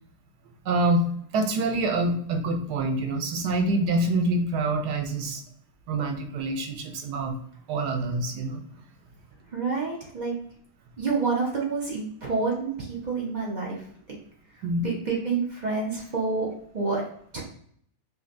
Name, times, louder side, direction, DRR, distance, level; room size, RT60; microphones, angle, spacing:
voice 1, 0.7-1.1 1.3-5.4 5.9-7.4 7.7-8.6 14.6-14.8, right 2 dB, 85° right, 5 dB, 1.2 m, -26 dB
voice 2, 9.5-10.3 11.0-13.8 14.8-16.5 16.7-17.0 17.3-17.4, right 4 dB, 30° right, -4 dB, 1.0 m, -28 dB
5.2 x 2.2 x 2.6 m, 0.63 s
omnidirectional pair, 1.7 m